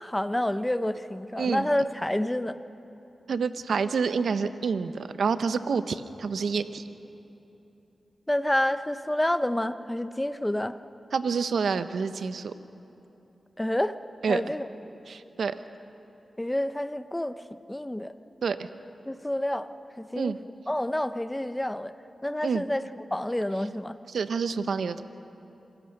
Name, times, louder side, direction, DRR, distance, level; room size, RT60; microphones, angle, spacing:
voice 1, 0.0-2.6 8.3-10.8 13.6-14.0 14.3-14.7 16.4-18.1 19.0-19.7 20.0-20.3 20.7-21.9 22.2-22.8 23.1-24.0, left 1 dB, 15° left, 12 dB, 0.8 m, -28 dB
voice 2, 1.4-1.7 3.3-6.8 11.1-12.5 14.2-14.4 15.1-15.5 18.4-18.6 20.1-20.4 22.4-22.6 24.1-25.0, right 5 dB, 80° right, 12 dB, 0.7 m, -28 dB
26.5 x 16.5 x 6.6 m, 2.9 s
cardioid pair, 55°, 0 cm